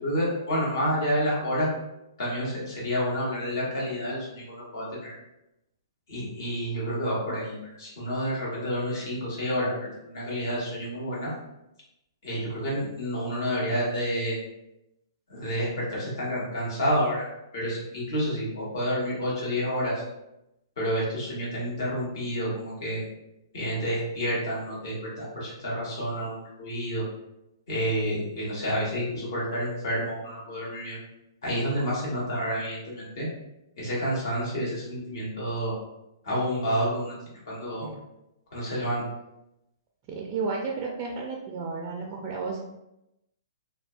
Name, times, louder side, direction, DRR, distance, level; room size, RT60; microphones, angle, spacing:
voice 1, 0.0-1.7 2.2-5.1 6.1-9.7 10.1-11.3 12.2-14.4 15.3-17.3 17.5-20.0 20.8-23.0 23.5-27.0 27.7-31.0 31.4-33.3 33.8-35.7 36.2-37.1 37.5-37.9 38.5-39.0, equal, 60° left, -6 dB, 1.2 m, -29 dB
voice 2, 40.1-42.6, right 4 dB, 35° right, -1 dB, 0.3 m, -32 dB
2.4 x 2.2 x 2.3 m, 0.89 s
hypercardioid pair, 125°, 2 cm